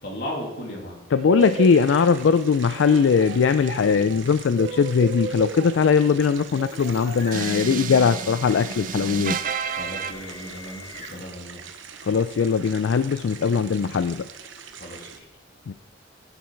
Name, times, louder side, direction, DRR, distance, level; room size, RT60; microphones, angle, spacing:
voice 1, 0.0-1.1 9.8-11.6 14.8-15.2, equal, 60° left, 0 dB, 2.5 m, -36 dB
voice 2, 1.1-9.4 12.0-14.3 15.7-15.8, left 5 dB, 80° left, 11 dB, 0.4 m, -20 dB
sound 1, 1.1-2.3 2.7-10.1, right 5 dB, 45° right, 0.4 m, -32 dB
sound 2, 1.4-15.2, right 7 dB, 80° right, 0.8 m, -44 dB
sound 3, 6.2-11.4, left 1 dB, 20° left, 3.6 m, -43 dB
9.4 x 8.3 x 4.6 m, 0.87 s
head